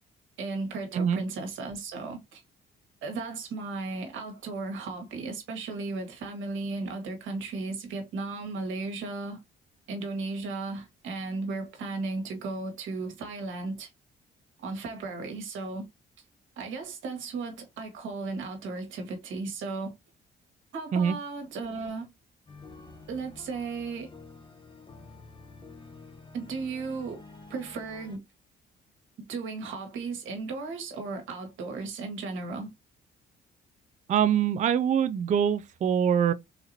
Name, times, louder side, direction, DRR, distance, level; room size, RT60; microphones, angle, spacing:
voice 1, 0.4-2.4 3.0-9.4 9.9-13.9 14.6-15.9 16.6-19.9 20.7-22.1 23.1-24.1 26.3-27.2 27.5-28.2 29.3-32.7, right 3 dB, 80° right, 1.5 m, -35 dB
sound 1, 22.5-28.2, left 3 dB, 25° left, 0.8 m, -49 dB
voice 2, 34.1-36.3, right 8 dB, 40° right, 0.4 m, -24 dB
4.0 x 2.9 x 2.6 m
cardioid pair, 90°, 20 cm